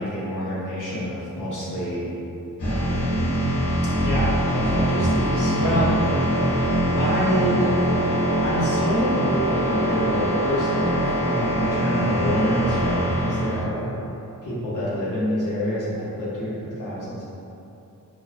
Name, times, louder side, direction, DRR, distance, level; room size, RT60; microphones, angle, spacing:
voice 1, 0.0-2.1 2.6-3.3 4.0-6.2 6.9-7.7 8.4-14.0 14.4-17.2, equal, 70° left, -8 dB, 1.1 m, -27 dB
sound 1, 2.6-13.6, right 1 dB, 90° left, 1.3 m, -23 dB
4.3 x 3.0 x 2.3 m, 2.8 s
wide cardioid pair, 160°, 32 cm